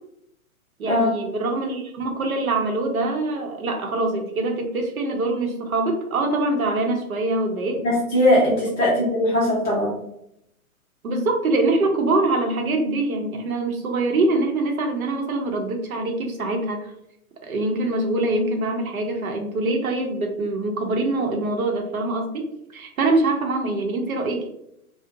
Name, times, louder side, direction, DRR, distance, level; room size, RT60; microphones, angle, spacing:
voice 1, 0.8-7.8 11.0-16.9 17.4-24.5, right 2 dB, 70° right, 3 dB, 0.7 m, -24 dB
voice 2, 7.8-9.9, left 1 dB, 15° left, -7 dB, 0.6 m, -20 dB
2.5 x 2.1 x 2.5 m, 0.78 s
figure-of-eight pair, 125°, 44 cm